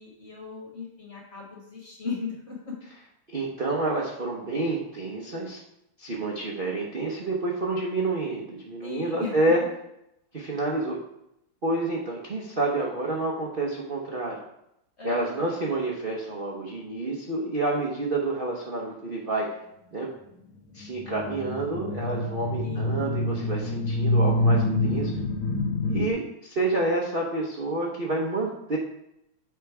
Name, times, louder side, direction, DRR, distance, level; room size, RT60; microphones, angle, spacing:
voice 1, 0.0-2.7 8.8-9.3 15.0-15.5 22.6-23.0, left 5 dB, 35° left, -2 dB, 1.5 m, -37 dB
voice 2, 3.3-5.6 6.0-9.6 10.3-11.0 11.6-14.4 15.0-19.5 19.9-20.1 20.7-25.1 25.9-28.8, right 2 dB, 70° right, -3 dB, 0.5 m, -28 dB
sound 1, 20.8-26.1, left 1 dB, 75° left, 1.5 m, -26 dB
8.3 x 3.7 x 4.6 m, 0.80 s
omnidirectional pair, 2.4 m